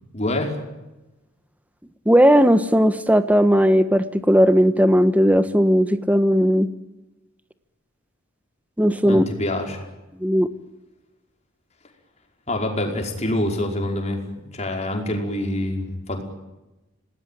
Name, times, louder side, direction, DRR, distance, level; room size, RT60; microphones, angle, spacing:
voice 1, 0.1-0.6 9.0-9.9 12.5-14.2 14.5-16.2, left 1 dB, 35° left, 2 dB, 5.1 m, -26 dB
voice 2, 2.0-6.7 8.8-9.2 10.2-10.5, equal, 5° right, 11 dB, 1.3 m, -17 dB
27.5 x 19.5 x 9.2 m, 1.0 s
head